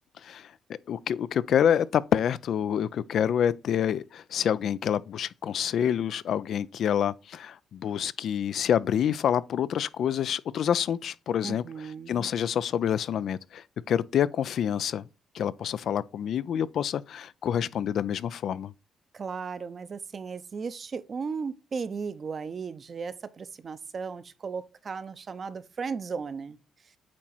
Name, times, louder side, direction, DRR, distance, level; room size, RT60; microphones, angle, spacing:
voice 1, 0.2-11.6 12.1-15.1 15.3-18.7, left 9 dB, 65° left, 0.3 m, -27 dB
voice 2, 11.4-12.3 19.1-26.6, right 5 dB, 45° right, 0.6 m, -36 dB
8.5 x 3.0 x 4.3 m
cardioid pair, 90°, 0 cm